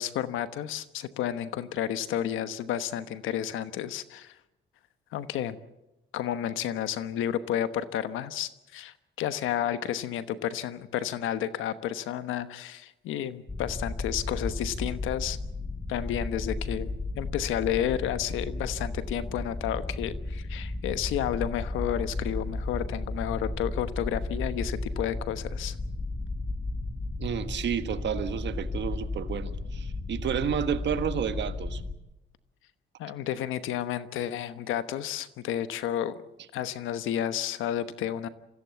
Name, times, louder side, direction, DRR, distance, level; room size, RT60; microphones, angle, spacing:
voice 1, 0.0-4.4 5.1-5.6 6.1-15.4 15.9-25.8 33.0-36.2 36.5-38.3, left 10 dB, 90° left, 12 dB, 1.1 m, -31 dB
sound 1, 13.5-31.9, left 2 dB, 20° left, 1.8 m, -34 dB
voice 2, 27.2-31.8, right 8 dB, 65° right, 10 dB, 1.5 m, -31 dB
25.5 x 15.5 x 8.3 m, 0.96 s
cardioid pair, 90°, 20 cm